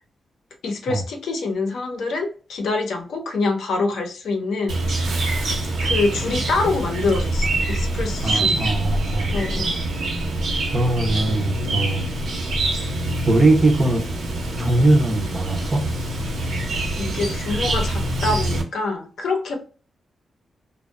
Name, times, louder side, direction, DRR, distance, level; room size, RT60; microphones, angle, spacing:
voice 1, 0.6-5.4 5.8-8.6 9.3-9.8 16.5-16.6 17.0-19.6, left 3 dB, 85° left, 3 dB, 0.6 m, -25 dB
Chirp tweet, 4.7-18.6, right 1 dB, 80° right, 0.7 m, -25 dB
voice 2, 8.2-9.3 10.7-12.1 13.3-14.0 14.6-15.9, right 2 dB, 20° right, 4 dB, 0.4 m, -20 dB
2.6 x 2.1 x 2.2 m, 0.38 s
wide cardioid pair, 180°, 0 cm